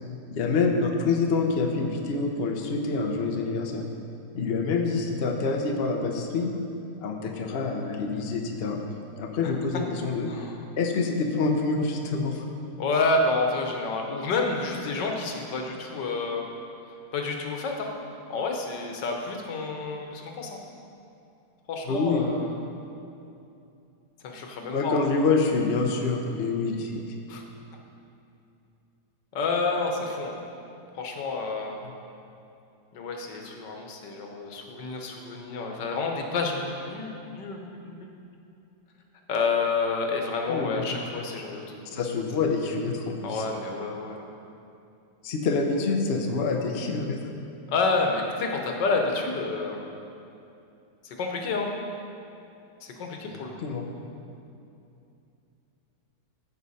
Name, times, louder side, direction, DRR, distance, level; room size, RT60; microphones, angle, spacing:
voice 1, 0.3-3.8 4.3-6.5 7.0-8.8 9.2-10.3 10.8-12.4 21.8-22.3 24.7-26.9 40.4-40.8 41.9-43.4 45.2-47.2 53.6-53.8, left 4 dB, 45° left, 2 dB, 0.8 m, -26 dB
voice 2, 12.8-16.5 17.1-17.9 18.3-20.6 21.7-22.6 24.2-25.0 27.3-27.4 29.3-30.4 31.0-31.8 32.9-38.1 39.3-42.1 43.2-44.3 47.7-49.8 51.0-51.7 52.8-53.7, left 3 dB, 85° left, 2 dB, 1.6 m, -29 dB
14.5 x 5.5 x 4.2 m, 2.7 s
omnidirectional pair, 1.8 m